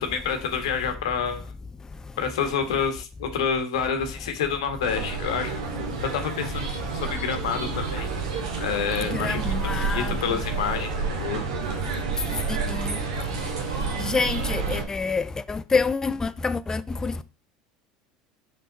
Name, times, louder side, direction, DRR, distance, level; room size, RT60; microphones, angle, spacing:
voice 1, 0.0-1.5 2.2-5.6 6.0-8.1 8.6-9.4 9.8-11.4, left 7 dB, 80° left, 1.3 m, -28 dB
sound 1, 4.8-14.8, right 4 dB, 85° right, 1.8 m, -29 dB
voice 2, 9.1-10.1 12.7-12.8 14.1-17.2, left 4 dB, 20° left, 0.5 m, -27 dB
5.5 x 5.3 x 4.0 m
hypercardioid pair, 85°, 3 cm